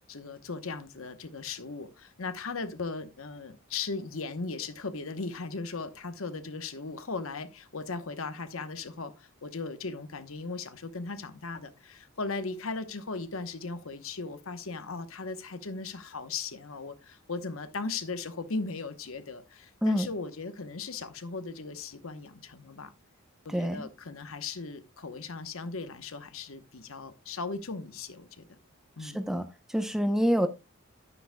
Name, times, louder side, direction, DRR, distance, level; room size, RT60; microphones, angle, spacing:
voice 1, 0.1-22.9 23.4-28.5 29.0-29.2, left 4 dB, 70° left, 1.0 m, -37 dB
voice 2, 23.5-23.9 29.0-29.5 29.7-30.5, equal, ahead, 0.6 m, -26 dB
9.9 x 9.7 x 2.2 m
head